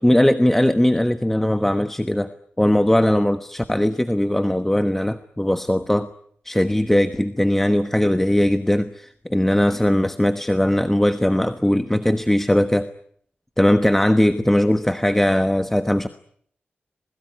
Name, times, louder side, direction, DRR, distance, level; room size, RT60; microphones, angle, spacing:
voice 1, 0.0-6.1 6.4-12.9 13.6-16.1, left 1 dB, 10° left, 10 dB, 1.2 m, -19 dB
27.5 x 21.0 x 9.5 m, 0.66 s
wide cardioid pair, 110°, 4 cm